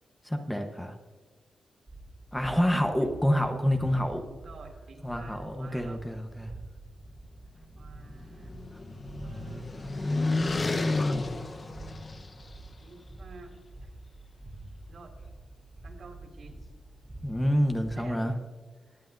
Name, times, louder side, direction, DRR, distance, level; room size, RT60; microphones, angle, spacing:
voice 1, 0.2-0.9 2.3-4.2 5.0-6.5 17.2-18.3, equal, 5° left, 5 dB, 1.0 m, -27 dB
sound 1, 1.9-18.1, right 2 dB, 15° right, 2.5 m, -47 dB
voice 2, 4.2-6.0 7.7-8.5 9.2-9.9 12.8-13.9 14.9-15.1 15.8-16.6 17.9-18.4, right 3 dB, 65° right, 1 dB, 2.5 m, -50 dB
sound 2, 7.8-12.6, left 2 dB, 35° left, 0.9 m, -31 dB
21.0 x 8.4 x 2.6 m, 1.4 s
wide cardioid pair, 120°, 0 cm